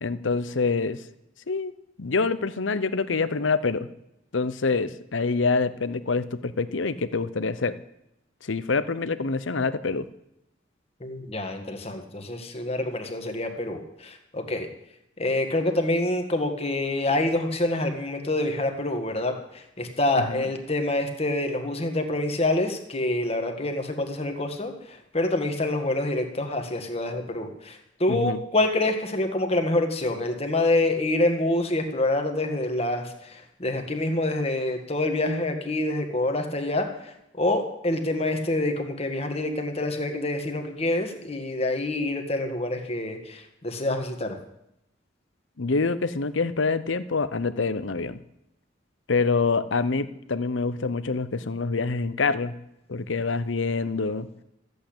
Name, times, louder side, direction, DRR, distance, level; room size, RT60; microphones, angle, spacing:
voice 1, 0.0-1.0 1.5-1.7 2.0-3.9 4.3-7.7 8.4-10.1 20.2-20.5 28.1-28.4 45.6-48.2 49.1-52.5 52.9-54.3, left 4 dB, 80° left, 14 dB, 0.8 m, -26 dB
voice 2, 11.0-14.7 15.2-44.4, left 2 dB, 30° left, 5 dB, 1.7 m, -27 dB
14.0 x 8.3 x 8.7 m, 0.84 s
head